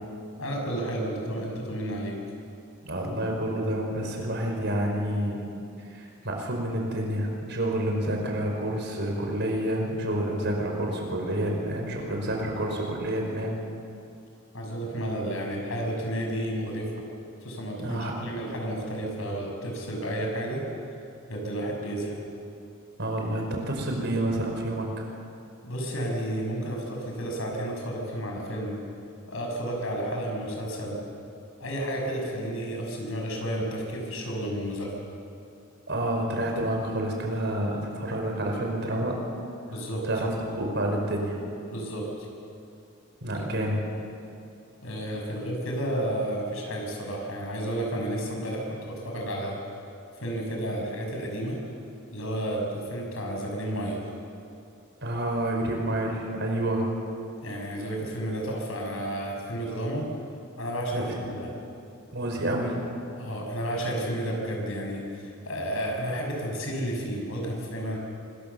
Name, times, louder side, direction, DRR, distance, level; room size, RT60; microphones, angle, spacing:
voice 1, 0.4-2.2 14.5-17.0 17.4-20.6 21.3-22.2 25.6-28.8 29.3-31.0 31.6-34.9 39.7-40.1 41.7-42.1 43.3-43.7 44.8-49.6 50.2-51.6 52.1-54.0 57.4-60.1 60.6-61.5 63.2-68.0, right 1 dB, 65° left, 1 dB, 6.4 m, -31 dB
voice 2, 2.8-5.4 5.8-13.6 17.8-18.1 23.0-25.1 35.9-39.2 40.0-40.3 40.6-41.4 43.2-43.8 55.0-56.9 60.9-61.1 62.1-62.8, right 1 dB, 55° right, 1 dB, 5.2 m, -29 dB
25.5 x 22.5 x 7.1 m, 2.6 s
head